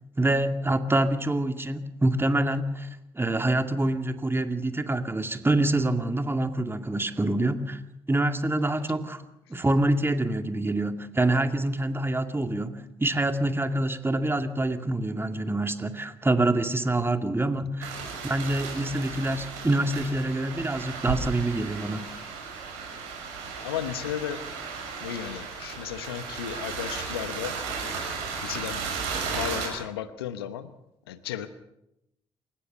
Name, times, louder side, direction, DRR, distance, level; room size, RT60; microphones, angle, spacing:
voice 1, 0.2-2.9 3.2-7.8 8.1-9.2 9.5-17.9 18.2-22.1, right 2 dB, 20° right, 8 dB, 2.3 m, -26 dB
sound 1, 17.8-29.7, right 5 dB, 75° right, 6.4 m, -35 dB
voice 2, 23.6-24.5 25.0-27.6 28.4-29.0 29.3-30.8 31.1-31.5, left 10 dB, 80° left, 14 dB, 1.0 m, -34 dB
28.0 x 15.5 x 6.8 m, 0.85 s
figure-of-eight pair, 40°, 13 cm